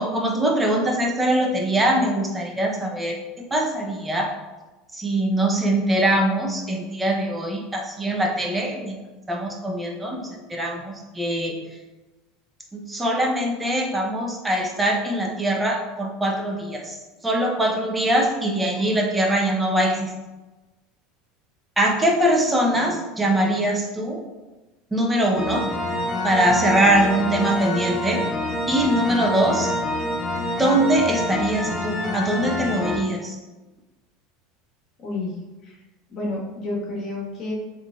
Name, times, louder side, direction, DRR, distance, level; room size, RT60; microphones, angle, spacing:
voice 1, 0.0-3.2 3.5-4.3 4.9-9.0 9.3-10.2 10.5-11.6 12.7-16.8 17.2-20.1 21.8-24.2 24.9-25.7 26.2-28.2 28.7-29.7 30.6-33.4, right 1 dB, 15° right, 1 dB, 0.7 m, -22 dB
sound 1, 25.3-33.0, left 1 dB, 25° left, 0.9 m, -27 dB
voice 2, 36.1-37.5, left 2 dB, 45° left, -4 dB, 1.4 m, -30 dB
3.6 x 3.4 x 2.4 m, 1.1 s
hypercardioid pair, 90°, 0 cm